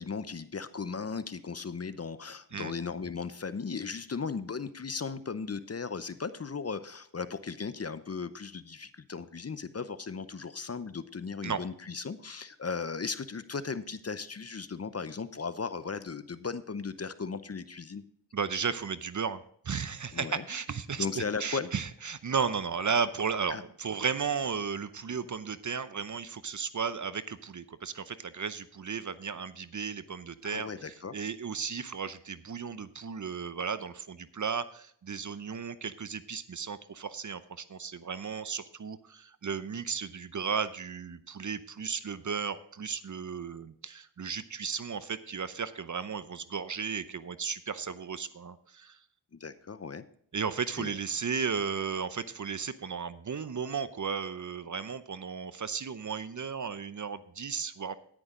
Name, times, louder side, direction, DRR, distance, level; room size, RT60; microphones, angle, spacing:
voice 1, 0.0-18.0 20.1-20.4 21.0-21.7 23.5-23.6 30.4-31.2 49.4-50.0 50.8-51.0, left 5 dB, 35° left, 13 dB, 0.7 m, -37 dB
voice 2, 18.3-49.0 50.3-58.0, right 6 dB, 40° right, 14 dB, 0.7 m, -34 dB
9.9 x 9.8 x 3.8 m, 0.63 s
cardioid pair, 45°, 45 cm